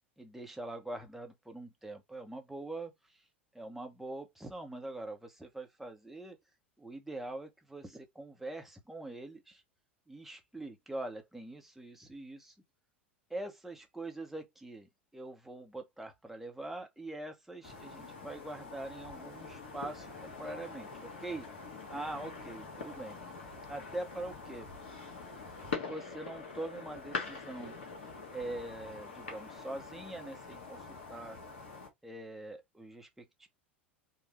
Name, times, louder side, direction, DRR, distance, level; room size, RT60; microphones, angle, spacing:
voice 1, 0.2-3.2 3.5-6.4 6.8-9.6 10.1-12.5 13.3-21.5 21.9-23.2 23.7-24.7 25.8-27.7 28.3-31.4 32.0-33.5, right 2 dB, 5° right, 1.1 m, -43 dB
sound 1, 17.6-31.9, left 4 dB, 70° left, 1.5 m, -44 dB
4.6 x 2.6 x 3.1 m
figure-of-eight pair, 80°, 6 cm